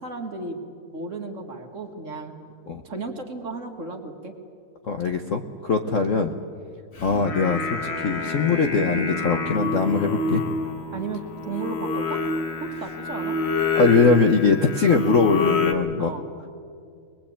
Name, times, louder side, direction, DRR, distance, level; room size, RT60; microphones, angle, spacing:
voice 1, 0.0-2.4 2.8-4.4 10.9-12.3 12.6-13.4 16.0-16.3, right 3 dB, 40° right, 3 dB, 1.9 m, -34 dB
voice 2, 4.9-6.3 7.0-10.4 13.8-16.1, left 4 dB, 50° left, 6 dB, 1.0 m, -21 dB
Singing, 7.0-15.7, left 3 dB, 35° left, 1.3 m, -27 dB
23.5 x 20.5 x 8.6 m, 2.3 s
omnidirectional pair, 2.3 m